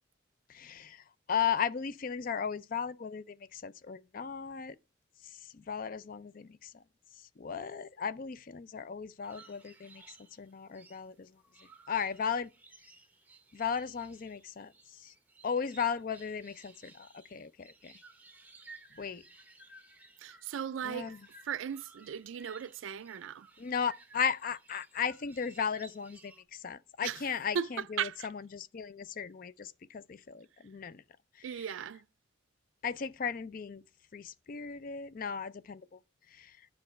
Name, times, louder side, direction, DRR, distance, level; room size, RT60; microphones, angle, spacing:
voice 1, 0.5-4.8 5.4-6.7 7.4-11.3 11.9-12.5 13.5-15.1 15.4-17.9 19.0-19.2 20.8-21.2 23.6-31.0 32.8-33.8 34.1-36.0 36.3-36.6, left 7 dB, 45° left, 0.4 m, -36 dB
sound 1, 9.2-26.4, right 3 dB, 10° right, 0.7 m, -57 dB
voice 2, 20.2-21.2 21.4-23.5 27.0-27.2 27.5-28.3 31.4-32.0, right 8 dB, 80° right, 0.4 m, -37 dB
8.9 x 5.3 x 4.2 m
head